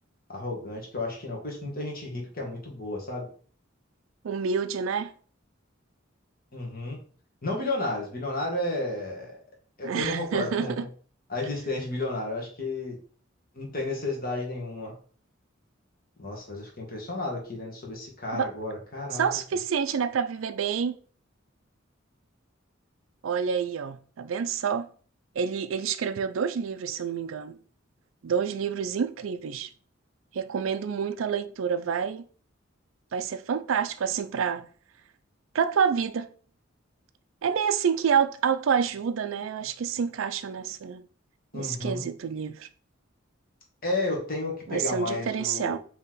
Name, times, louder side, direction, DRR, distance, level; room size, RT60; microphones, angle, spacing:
voice 1, 0.3-3.3 6.5-7.0 7.4-9.3 9.8-10.9 11.3-13.0 13.5-14.9 16.2-19.4 41.5-42.1 43.8-45.8, left 2 dB, 50° left, 1.4 m, -32 dB
voice 2, 4.2-5.1 9.8-10.8 18.3-18.5 19.1-21.0 23.2-24.9 25.4-27.6 28.2-29.7 30.3-32.2 33.1-34.6 35.5-36.3 37.4-41.0 41.5-42.7 44.7-45.8, right 7 dB, 85° right, 0.4 m, -28 dB
4.0 x 3.0 x 3.8 m
head